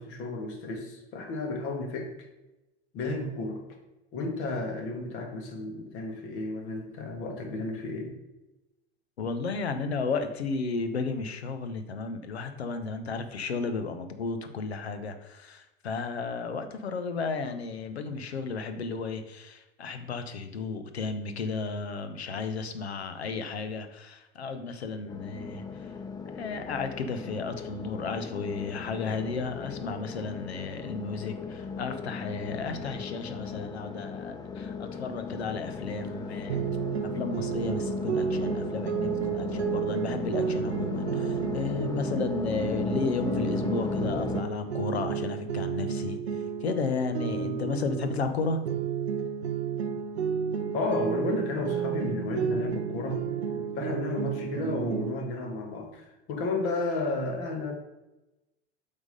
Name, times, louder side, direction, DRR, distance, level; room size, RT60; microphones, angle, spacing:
voice 1, 0.0-2.1 2.9-3.6 4.1-8.1 50.7-53.2 53.7-57.7, left 2 dB, 45° left, 4 dB, 1.6 m, -32 dB
voice 2, 9.2-25.9 26.3-36.7 37.1-46.2 46.6-48.6, left 4 dB, 75° left, 9 dB, 0.9 m, -33 dB
sound 1, 25.1-44.4, left 5 dB, 15° left, 0.4 m, -36 dB
sound 2, 36.5-48.3 48.6-55.2, right 7 dB, 75° right, 0.8 m, -32 dB
7.9 x 3.7 x 5.3 m, 1.0 s
figure-of-eight pair, 85°, 32 cm